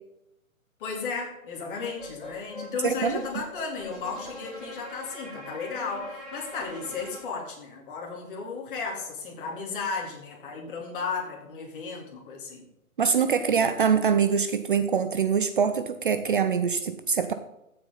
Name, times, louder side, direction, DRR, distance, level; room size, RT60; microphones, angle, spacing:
voice 1, 0.8-12.6, left 5 dB, 40° left, -1 dB, 3.5 m, -34 dB
sound 1, 2.0-7.2, left 1 dB, ahead, 0.5 m, -42 dB
voice 2, 2.8-3.2 13.0-17.3, right 6 dB, 40° right, 10 dB, 0.6 m, -24 dB
15.0 x 7.8 x 4.1 m, 0.84 s
hypercardioid pair, 150°, 41 cm